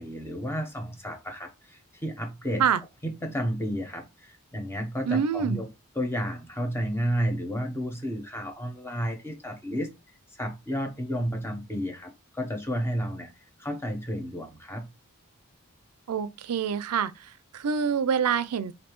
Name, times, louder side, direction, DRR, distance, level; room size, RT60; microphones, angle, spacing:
voice 1, 0.0-2.7 3.0-5.7 6.0-9.9 10.3-14.9, equal, 10° left, 0.8 m, -32 dB
voice 2, 5.0-5.6 16.1-18.7, right 7 dB, 90° right, 0.4 m, -26 dB
5.2 x 2.6 x 3.0 m
head